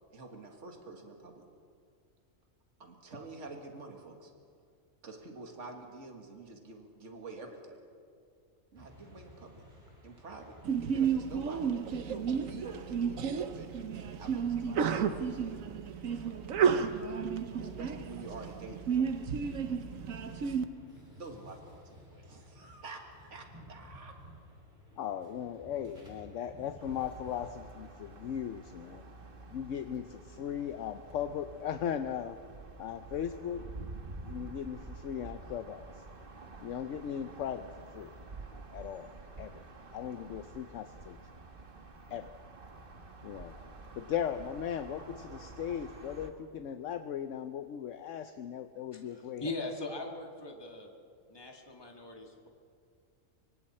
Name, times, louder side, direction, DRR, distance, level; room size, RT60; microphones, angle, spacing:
voice 1, 0.1-1.5 2.8-4.3 5.0-7.8 8.7-9.6 10.0-10.6 10.8-13.7 14.2-15.3 16.1-16.4 17.6-19.0 21.2-24.2, right 3 dB, 65° right, 3 dB, 2.3 m, -47 dB
sound 1, 8.7-27.5, equal, 25° right, 5.2 m, -56 dB
Sneeze, 10.6-20.6, right 7 dB, 90° right, 1.3 m, -32 dB
voice 2, 24.9-29.0 29.5-32.4 32.8-33.7 34.2-36.0 36.6-38.1 38.7-39.1 39.4-39.6 39.9-41.2 42.1-42.3 43.2-43.6 43.9-49.5, left 9 dB, 75° left, 9 dB, 1.0 m, -38 dB
sound 2, 26.8-46.3, right 3 dB, 45° right, 1.5 m, -49 dB
voice 3, 48.9-50.9 51.3-52.5, left 2 dB, 20° left, 1 dB, 2.0 m, -40 dB
26.0 x 24.0 x 4.3 m, 2.3 s
omnidirectional pair, 1.3 m